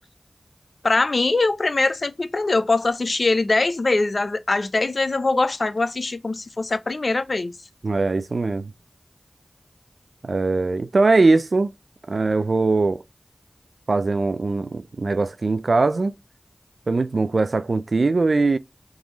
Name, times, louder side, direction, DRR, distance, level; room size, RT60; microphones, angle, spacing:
voice 1, 0.8-7.5, left 3 dB, 70° left, 0.5 m, -22 dB
voice 2, 7.8-8.7 10.2-11.7 12.1-13.0 13.9-16.1 16.9-18.6, right 3 dB, 80° right, 0.3 m, -21 dB
3.6 x 3.0 x 3.7 m
wide cardioid pair, 40°, 0 cm